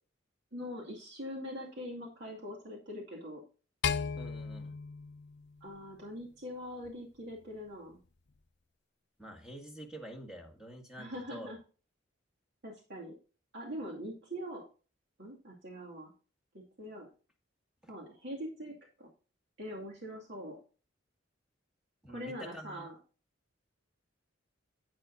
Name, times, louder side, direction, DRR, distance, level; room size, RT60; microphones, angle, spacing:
voice 1, 0.5-3.4 5.6-8.0 11.0-11.6 12.6-13.1 13.5-14.6 15.2-16.1 16.5-17.1 17.9-19.1 19.6-20.6 22.1-22.9, equal, 60° right, -1 dB, 2.3 m, -43 dB
sound 1, 3.8-6.2, left 6 dB, 60° left, 0.6 m, -36 dB
voice 2, 4.2-4.8 9.2-11.5 17.8-17.9 22.0-22.9, equal, 5° right, 3 dB, 1.8 m, -47 dB
10.5 x 9.3 x 2.6 m, 0.36 s
head